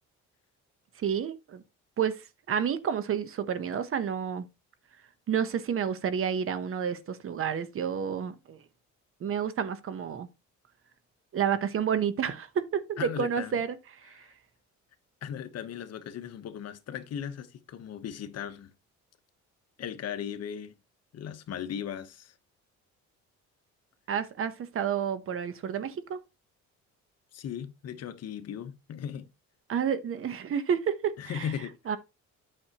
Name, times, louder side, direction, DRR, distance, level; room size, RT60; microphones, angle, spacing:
voice 1, 1.0-1.6 2.0-2.2 2.5-4.5 5.3-8.6 9.2-10.3 11.3-13.8 14.0-14.2 24.1-26.2 29.7-31.5 31.9-32.0, right 8 dB, 45° right, 0.9 m, -30 dB
voice 2, 13.0-13.6 14.1-14.3 15.2-18.7 19.8-20.7 21.1-22.3 27.3-29.3 31.2-31.7, left 9 dB, 55° left, 1.0 m, -37 dB
8.9 x 6.2 x 2.9 m
cardioid pair, 125°, 30 cm